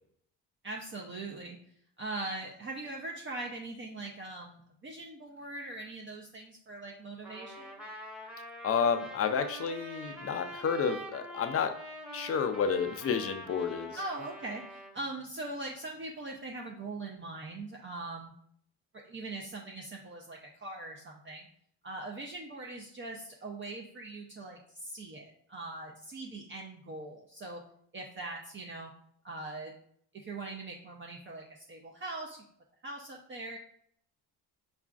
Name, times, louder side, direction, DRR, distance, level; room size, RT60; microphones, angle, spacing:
voice 1, 0.6-1.6 2.0-7.8 14.0-18.3 19.0-21.5 21.8-27.6 27.9-28.9 29.2-29.7 30.2-32.4 32.8-33.6, right 2 dB, 30° right, 0 dB, 0.5 m, -41 dB
Trumpet, 7.2-14.9, equal, 5° right, 0.8 m, -45 dB
voice 2, 8.6-11.7 12.1-14.0, left 6 dB, 35° left, 7 dB, 0.4 m, -30 dB
4.8 x 2.4 x 2.3 m, 0.66 s
cardioid pair, 95°, 40 cm